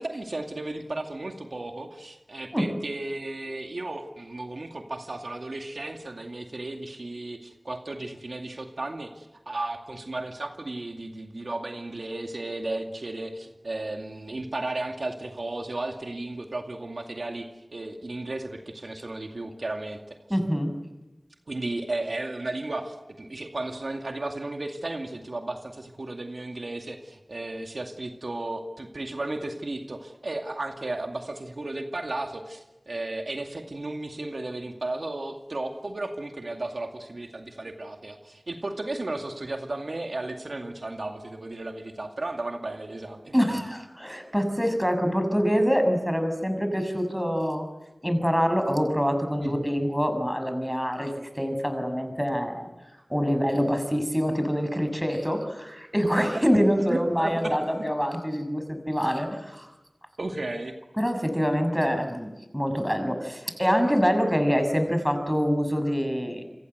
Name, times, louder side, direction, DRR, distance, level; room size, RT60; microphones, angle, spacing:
voice 1, 0.0-20.4 21.5-43.3 49.4-49.6 56.2-56.6 56.9-57.8 60.2-60.7, right 2 dB, 75° right, 3 dB, 2.3 m, -34 dB
voice 2, 20.3-20.7 43.3-47.7 48.0-52.7 53.1-59.7 61.0-66.4, equal, ahead, 7 dB, 6.5 m, -25 dB
29.0 x 24.5 x 8.0 m, 1.0 s
wide cardioid pair, 45°, 0 cm